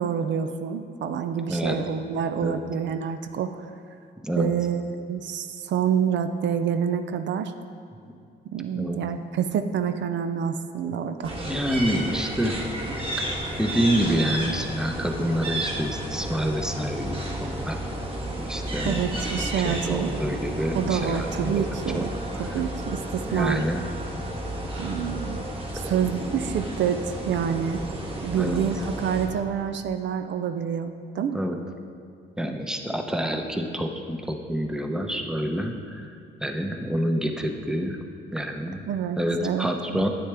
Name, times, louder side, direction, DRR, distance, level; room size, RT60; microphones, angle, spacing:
voice 1, 0.0-3.7 4.4-7.5 8.5-11.3 18.8-20.2 20.7-22.1 22.4-23.6 24.8-25.5 25.7-27.8 28.2-31.4 38.9-40.1, right 8 dB, 65° right, 9 dB, 0.5 m, -27 dB
sound 1, 11.2-29.3, right 1 dB, 30° right, 1.6 m, -32 dB
voice 2, 11.5-12.6 13.2-13.3 13.6-17.8 18.4-19.1 19.4-21.6 21.9-22.1 22.5-22.6 23.3-23.8 25.7-26.7 28.2-28.6 31.3-31.6 32.4-36.1 36.4-38.0 38.3-38.8 39.2-40.1, equal, 5° right, 4 dB, 0.8 m, -28 dB
9.8 x 8.6 x 3.4 m, 2.3 s
cardioid pair, 90°, 20 cm